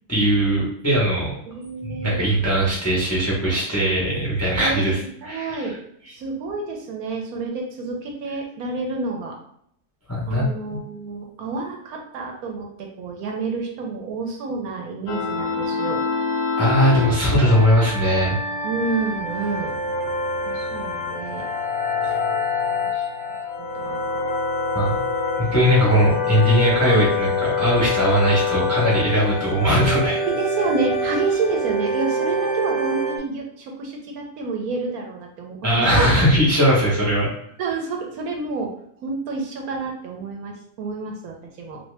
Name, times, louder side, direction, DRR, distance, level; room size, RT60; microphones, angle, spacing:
voice 1, 0.1-1.3 1.8-5.6 10.1-10.8 16.6-18.4 24.7-25.0 25.4-30.2 35.6-37.3, equal, 20° left, -6 dB, 0.4 m, -19 dB
voice 2, 1.5-2.2 4.6-5.8 6.1-9.4 10.3-16.0 18.6-19.8 20.4-21.5 22.7-23.1 23.6-24.2 30.2-36.1 37.6-38.7 39.0-41.8, right 3 dB, 70° right, 1 dB, 1.1 m, -29 dB
sound 1, 15.1-33.2, left 2 dB, 65° left, 0.7 m, -25 dB
2.8 x 2.7 x 3.2 m, 0.70 s
omnidirectional pair, 1.7 m